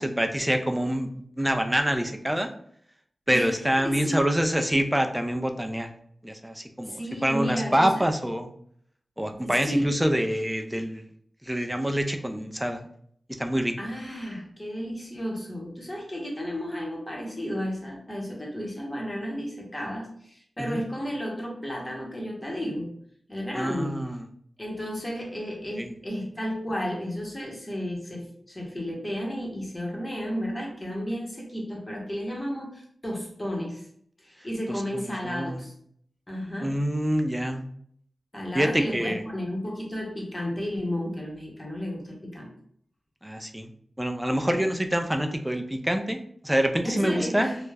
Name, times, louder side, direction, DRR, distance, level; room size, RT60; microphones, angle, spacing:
voice 1, 0.0-2.5 3.3-5.9 6.2-8.5 9.2-11.1 11.4-12.9 13.3-13.7 20.6-20.8 23.5-24.2 25.8-25.9 34.7-35.6 36.6-37.6 38.5-39.2 43.2-43.7 44.0-47.5, equal, 10° right, 5 dB, 0.3 m, -26 dB
voice 2, 3.8-4.2 6.8-7.9 9.3-9.9 13.8-22.9 23.3-24.0 24.6-33.8 34.2-35.7 36.3-36.7 38.3-42.5 44.6-44.7 46.8-47.6, equal, 20° left, -2 dB, 0.8 m, -33 dB
2.3 x 2.0 x 3.2 m, 0.64 s
wide cardioid pair, 85°, 0 cm